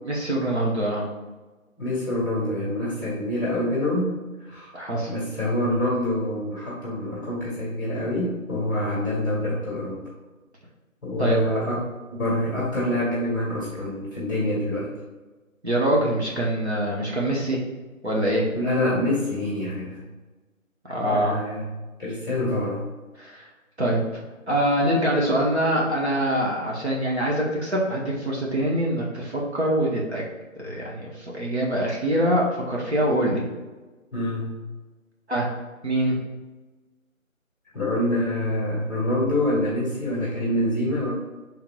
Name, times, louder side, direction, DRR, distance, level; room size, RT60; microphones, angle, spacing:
voice 1, 0.0-1.1 4.7-5.1 11.2-11.4 15.6-17.6 18.0-18.5 20.9-21.4 23.2-23.5 23.8-30.2 30.6-33.5 35.3-35.5 35.8-36.2, right 1 dB, 50° right, -3 dB, 1.0 m, -24 dB
voice 2, 1.8-4.7 5.1-10.0 11.0-14.9 18.5-20.0 21.0-21.6 22.0-22.8 34.1-34.5 37.7-41.1, left 1 dB, 15° left, -8 dB, 1.2 m, -26 dB
5.8 x 3.7 x 2.3 m, 1.2 s
figure-of-eight pair, 165°, 42 cm